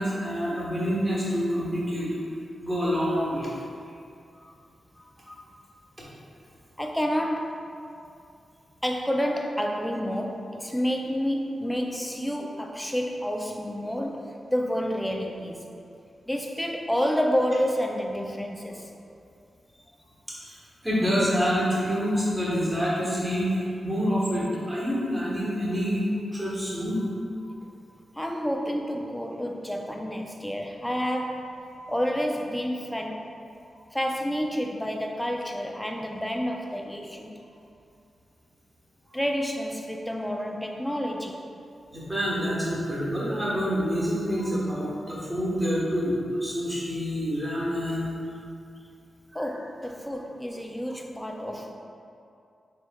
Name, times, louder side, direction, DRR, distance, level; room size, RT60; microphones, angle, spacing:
voice 1, 0.0-2.1 2.6-3.5 5.3-5.4 20.4-26.1 26.3-27.0 41.9-48.1 49.3-49.5, equal, 15° right, -7 dB, 1.2 m, -27 dB
voice 2, 6.8-7.7 8.8-15.8 16.3-18.9 28.2-31.6 31.9-33.3 33.9-37.3 39.1-41.4 49.3-51.7, equal, 5° left, 2 dB, 0.4 m, -29 dB
4.5 x 3.3 x 2.2 m, 2.5 s
cardioid pair, 70°, 0 cm